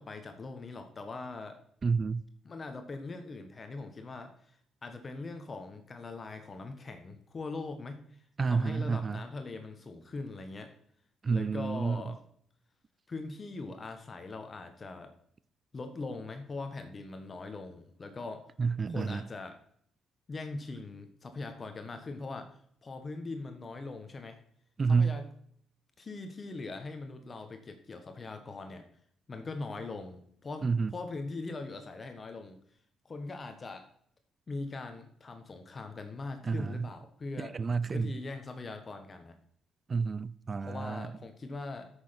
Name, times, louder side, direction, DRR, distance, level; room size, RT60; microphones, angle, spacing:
voice 1, 0.0-1.6 2.4-10.7 11.3-12.2 13.1-15.1 15.7-18.4 18.9-19.6 20.3-24.4 24.9-25.3 26.0-28.8 29.3-32.6 33.0-33.9 34.5-37.6 37.9-39.4 40.6-41.9, left 3 dB, 35° left, 1.3 m, -41 dB
voice 2, 1.8-2.2 8.4-9.2 11.2-12.0 18.6-19.2 24.8-25.2 30.6-30.9 36.4-36.9 37.4-38.2 39.9-41.1, right 5 dB, 35° right, 0.4 m, -29 dB
8.3 x 6.5 x 5.8 m
cardioid pair, 85°, 0 cm